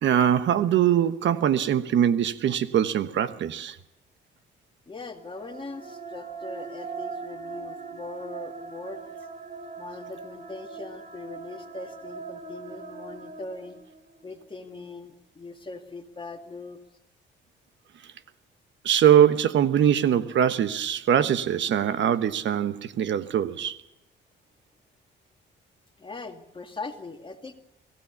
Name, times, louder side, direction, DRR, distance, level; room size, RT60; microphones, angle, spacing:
voice 1, 0.0-3.8 18.8-23.8, right 9 dB, 70° right, 1.2 m, -22 dB
voice 2, 4.9-9.1 9.8-13.8 14.2-16.8 26.0-27.5, left 3 dB, 25° left, 2.0 m, -40 dB
sound 1, 5.0-14.3, right 5 dB, 40° right, 2.4 m, -40 dB
23.0 x 16.0 x 7.1 m
cardioid pair, 90°, 20 cm